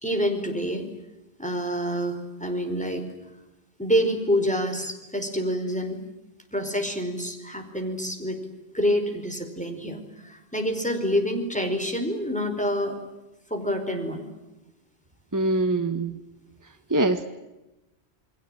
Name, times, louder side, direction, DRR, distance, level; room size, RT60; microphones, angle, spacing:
voice 1, 0.0-0.9 1.4-3.0 3.8-6.0 6.5-8.4 8.7-13.0 13.5-14.2, equal, 5° left, 4 dB, 4.8 m, -27 dB
voice 2, 15.3-16.2 16.6-17.2, right 2 dB, 15° right, 7 dB, 1.4 m, -24 dB
29.5 x 21.5 x 9.1 m, 0.99 s
omnidirectional pair, 1.1 m